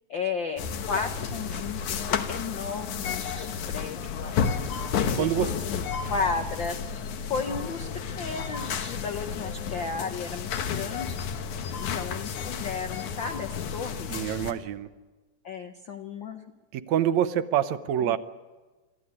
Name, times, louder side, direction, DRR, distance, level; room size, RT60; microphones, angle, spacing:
voice 1, 0.1-4.4 5.2-5.8 6.1-6.8 7.3-11.2 11.8-14.1 15.4-16.5 18.0-18.2, left 4 dB, 70° left, 5 dB, 1.1 m, -34 dB
sound 1, 0.6-14.5, left 6 dB, 90° left, 2.7 m, -32 dB
voice 2, 5.2-5.5 14.1-14.9 16.7-18.2, right 10 dB, 75° right, 11 dB, 2.0 m, -26 dB
25.0 x 14.0 x 9.7 m, 1.3 s
omnidirectional pair, 3.3 m